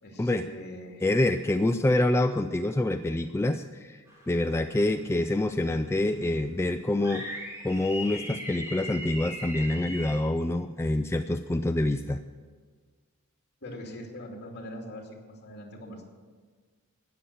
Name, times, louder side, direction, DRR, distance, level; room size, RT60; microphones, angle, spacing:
voice 1, 0.0-1.1 13.6-16.0, left 1 dB, 50° left, 1 dB, 2.6 m, -42 dB
voice 2, 1.0-4.0 4.3-7.3 7.6-12.2, left 1 dB, 10° left, 7 dB, 0.3 m, -26 dB
sound 1, 4.1-4.6 5.0-5.1 6.9-10.2, left 1 dB, 15° right, 3.0 m, -39 dB
13.0 x 9.9 x 7.1 m, 1.5 s
head